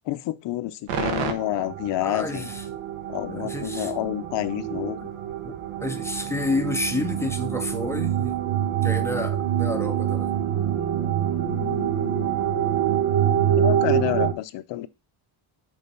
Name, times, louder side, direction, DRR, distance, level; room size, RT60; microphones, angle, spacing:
voice 1, 0.0-2.5 3.1-5.1 11.4-12.3 13.5-14.9, left 15 dB, 60° left, 0.6 m, -29 dB
sound 1, 0.9-14.3, right 10 dB, 90° right, 1.4 m, -26 dB
voice 2, 2.0-2.6 3.3-3.9 5.4-5.5 5.8-8.4 8.8-10.3, left 2 dB, 5° left, 0.5 m, -29 dB
6.5 x 4.0 x 5.3 m
cardioid pair, 180°, 50 cm